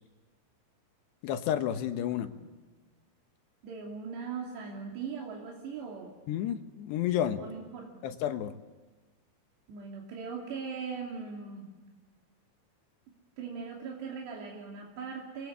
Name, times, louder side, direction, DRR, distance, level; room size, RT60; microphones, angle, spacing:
voice 1, 1.2-2.3 6.3-7.4 8.0-8.6, left 10 dB, 85° left, 8 dB, 3.3 m, -31 dB
voice 2, 3.6-6.1 7.4-8.0 9.7-11.7 13.4-15.5, right 5 dB, 85° right, -1 dB, 5.0 m, -40 dB
28.5 x 22.5 x 8.6 m, 1.3 s
omnidirectional pair, 4.8 m